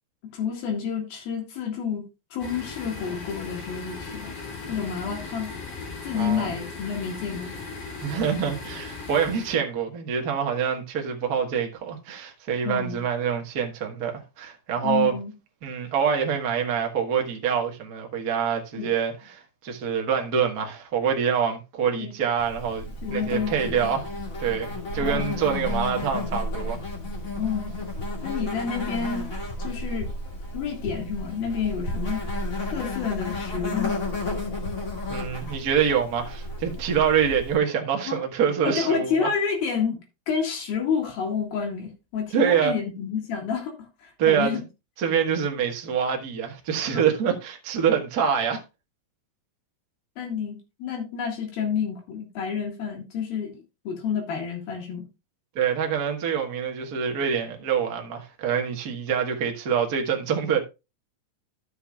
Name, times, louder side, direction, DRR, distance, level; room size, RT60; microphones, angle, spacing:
voice 1, 0.3-2.0 2.3-4.3 4.7-5.5 6.0-7.5 12.6-13.0 14.8-15.3 18.8-18.9 22.0-22.1 23.0-23.5 25.0-25.3 27.3-27.8 28.2-29.3 29.6-30.1 30.5-32.2 32.7-34.0 38.1-38.2 38.6-40.0 40.3-43.7 44.0-44.6 50.2-55.1, left 6 dB, 80° left, 3.7 m, -29 dB
sound 1, 2.4-9.6, left 4 dB, 60° left, 3.5 m, -38 dB
voice 2, 6.1-6.5 8.0-15.1 15.6-22.8 23.1-24.1 24.4-26.8 35.1-39.3 42.3-42.7 44.2-44.5 45.0-48.6 55.5-60.6, right 7 dB, 70° right, 0.8 m, -25 dB
Insect, 22.4-37.6, left 2 dB, 30° left, 1.7 m, -32 dB
13.5 x 6.9 x 2.3 m
omnidirectional pair, 4.2 m